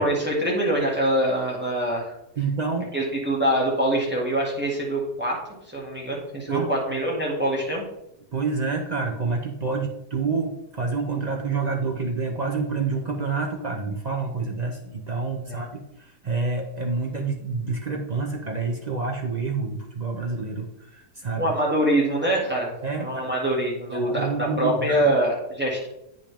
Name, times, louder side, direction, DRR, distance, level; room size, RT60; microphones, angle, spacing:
voice 1, 0.0-2.1 2.9-5.4 5.7-7.8 15.5-15.6 21.4-25.9, right 1 dB, 5° right, -4 dB, 1.9 m, -24 dB
voice 2, 2.4-2.9 6.5-6.7 8.3-21.5 22.8-23.2 23.9-25.1, right 4 dB, 50° right, 2 dB, 0.5 m, -28 dB
8.8 x 5.4 x 3.4 m, 0.81 s
omnidirectional pair, 1.7 m